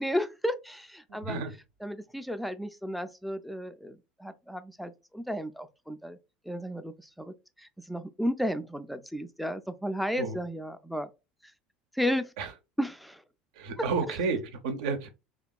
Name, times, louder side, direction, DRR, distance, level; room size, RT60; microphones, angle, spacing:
voice 1, 0.0-1.4 1.8-6.2 6.5-11.1 11.9-12.3 12.8-13.2 14.1-14.2, equal, ahead, 0.3 m, -33 dB
voice 2, 1.1-1.5 10.2-10.4 12.4-12.5 13.6-15.1, right 4 dB, 65° right, 0.5 m, -31 dB
2.8 x 2.3 x 2.2 m
hypercardioid pair, 75°, 4 cm